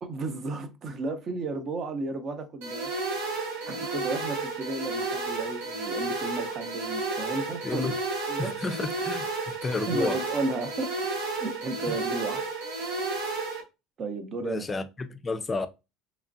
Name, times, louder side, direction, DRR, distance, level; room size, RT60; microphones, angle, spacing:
voice 1, 0.0-2.9 3.6-7.9 8.3-8.5 9.9-10.9 11.4-12.4 14.0-14.8, right 3 dB, 40° right, 0.6 m, -33 dB
sound 1, 2.6-13.6, right 3 dB, 90° right, 0.8 m, -32 dB
voice 2, 7.6-8.0 8.4-10.2 14.4-15.7, left 3 dB, 25° left, 0.3 m, -31 dB
3.0 x 2.4 x 2.5 m
supercardioid pair, 115°, 0 cm